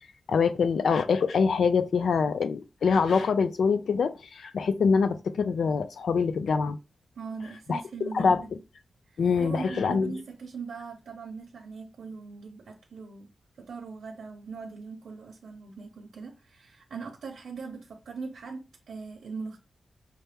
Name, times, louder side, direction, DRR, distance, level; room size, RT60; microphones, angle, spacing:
voice 1, 0.3-6.8 7.7-7.8 8.1-8.4 9.2-10.1, left 5 dB, 80° left, 0.5 m, -24 dB
voice 2, 7.2-8.5 9.1-13.3 13.6-19.6, right 4 dB, 80° right, 0.8 m, -40 dB
5.7 x 2.1 x 3.4 m
wide cardioid pair, 140°, 0 cm